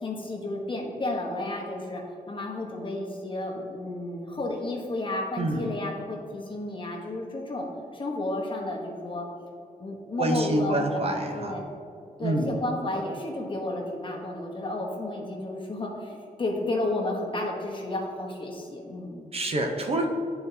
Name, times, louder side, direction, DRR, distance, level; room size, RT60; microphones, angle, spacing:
voice 1, 0.0-9.3 9.8-11.6 12.2-19.2, left 2 dB, 35° left, -1 dB, 1.0 m, -32 dB
voice 2, 10.2-11.5 12.2-12.5 19.3-20.1, right 1 dB, 45° right, 2 dB, 0.6 m, -26 dB
10.5 x 4.0 x 2.7 m, 2.5 s
wide cardioid pair, 145°, 14 cm